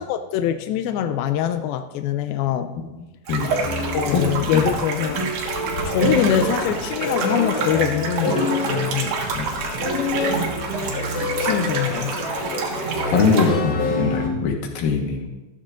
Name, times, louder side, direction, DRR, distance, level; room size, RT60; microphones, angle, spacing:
voice 1, 0.0-2.7 3.9-5.6 5.9-9.1 11.4-12.2, left 10 dB, 85° left, 8 dB, 2.1 m, -24 dB
sound 1, 3.3-13.5, right 5 dB, 75° right, 3.5 m, -29 dB
sound 2, 3.5-14.3, left 1 dB, 45° left, 5.8 m, -26 dB
voice 2, 13.1-15.3, left 5 dB, 70° left, 2 dB, 2.8 m, -21 dB
14.0 x 13.5 x 2.5 m, 1.1 s
omnidirectional pair, 4.9 m